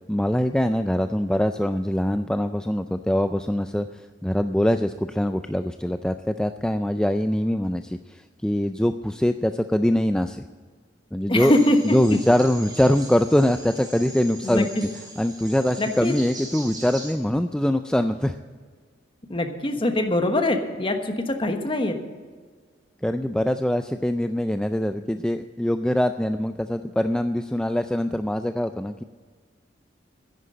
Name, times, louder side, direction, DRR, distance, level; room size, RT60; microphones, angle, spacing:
voice 1, 0.1-10.4 11.1-11.5 11.9-14.7 15.2-18.4 23.0-29.0, left 1 dB, 5° left, 8 dB, 0.3 m, -23 dB
voice 2, 11.3-11.8 14.4-14.6 15.8-16.1 19.3-22.0, left 1 dB, 30° left, 6 dB, 1.2 m, -23 dB
sound 1, 11.4-17.1, right 2 dB, 20° right, 4.5 m, -41 dB
10.5 x 9.9 x 7.5 m, 1.5 s
head